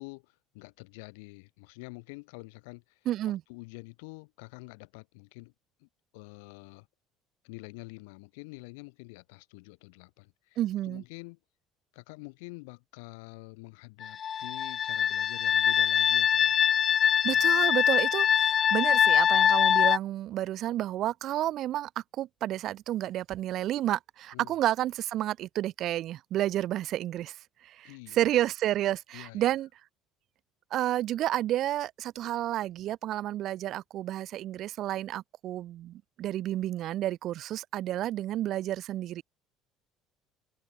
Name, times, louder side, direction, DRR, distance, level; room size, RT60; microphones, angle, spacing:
voice 1, 0.0-3.0 3.2-5.5 5.8-6.9 7.4-10.6 10.8-11.4 11.9-16.7 17.3-17.4 24.3-24.5 27.8-28.2 29.1-29.4, left 29 dB, 75° left, 1.9 m, -47 dB
voice 2, 3.1-3.4 10.6-11.0 17.2-21.9 22.2-27.4 27.6-29.7 30.7-39.2, right 13 dB, 60° right, 1.0 m, -30 dB
sound 1, 14.0-20.0, left 8 dB, 45° left, 0.3 m, -23 dB
hypercardioid pair, 65°, 0 cm